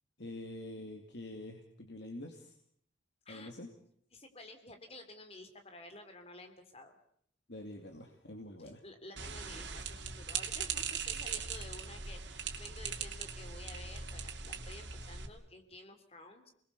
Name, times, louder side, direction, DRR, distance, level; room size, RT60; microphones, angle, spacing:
voice 1, 0.2-2.5 3.3-3.7 7.5-8.8, left 1 dB, 65° left, 3 dB, 2.6 m, -46 dB
voice 2, 4.1-7.0 8.8-16.5, left 2 dB, 30° left, 6 dB, 3.2 m, -52 dB
sound 1, 9.2-15.3, right 6 dB, 70° right, 2.9 m, -40 dB
28.5 x 21.0 x 6.9 m, 0.65 s
head